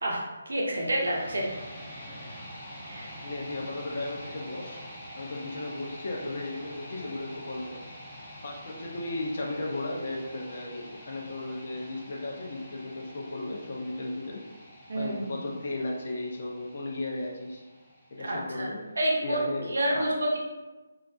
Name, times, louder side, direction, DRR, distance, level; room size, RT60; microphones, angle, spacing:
voice 1, 0.0-1.5 2.9-3.1 14.9-15.4 18.2-18.7 19.0-19.4 19.7-20.4, right 1 dB, 70° right, -2 dB, 0.6 m, -29 dB
sound 1, 0.6-18.6, equal, 10° left, 0.5 m, -46 dB
voice 2, 3.2-4.8 5.1-7.8 8.4-14.4 14.9-17.6 18.1-18.8 19.2-20.1, left 2 dB, 55° left, -2 dB, 0.5 m, -35 dB
2.4 x 2.0 x 2.6 m, 1.2 s
figure-of-eight pair, 150°, 0 cm